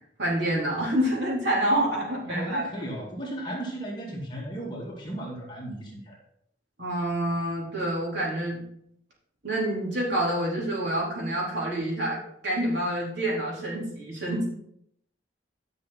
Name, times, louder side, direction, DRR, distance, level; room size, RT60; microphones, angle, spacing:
voice 1, 0.2-2.6 6.8-8.6 9.4-14.5, right 1 dB, 70° right, -5 dB, 4.0 m, -27 dB
voice 2, 2.3-6.2, right 1 dB, 25° left, -3 dB, 2.2 m, -35 dB
10.5 x 6.2 x 4.2 m, 0.71 s
head